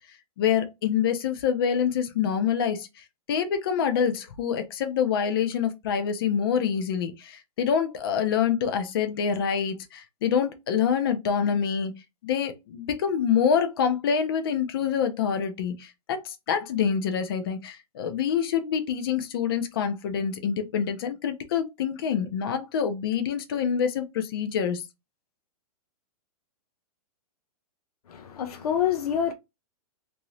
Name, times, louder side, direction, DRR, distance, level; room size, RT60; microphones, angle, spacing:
voice 1, 0.4-11.9 12.2-24.8, left 7 dB, 40° left, 0.5 m, -26 dB
voice 2, 28.1-29.3, left 9 dB, 85° left, 0.6 m, -26 dB
2.8 x 2.6 x 3.1 m
hypercardioid pair, 180°, 19 cm